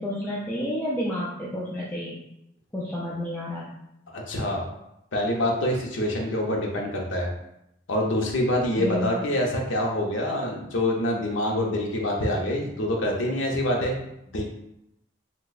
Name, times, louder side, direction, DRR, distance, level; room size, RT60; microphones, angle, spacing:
voice 1, 0.0-2.2 2.7-3.8 8.8-9.3, left 1 dB, 10° left, -7 dB, 0.4 m, -30 dB
voice 2, 4.1-4.6 5.1-7.3 7.9-14.0 14.3-14.4, left 1 dB, 70° left, 0 dB, 0.7 m, -26 dB
2.7 x 2.2 x 3.9 m, 0.82 s
head